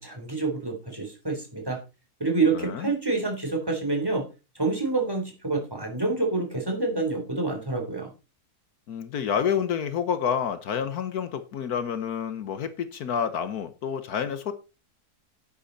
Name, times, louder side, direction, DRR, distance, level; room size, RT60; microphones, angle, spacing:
voice 1, 0.0-1.8 2.2-4.2 4.6-8.1, right 3 dB, 15° right, 3.7 m, -27 dB
voice 2, 2.5-2.9 8.9-14.5, left 7 dB, 75° left, 1.5 m, -29 dB
11.5 x 8.5 x 4.1 m
omnidirectional pair, 1.7 m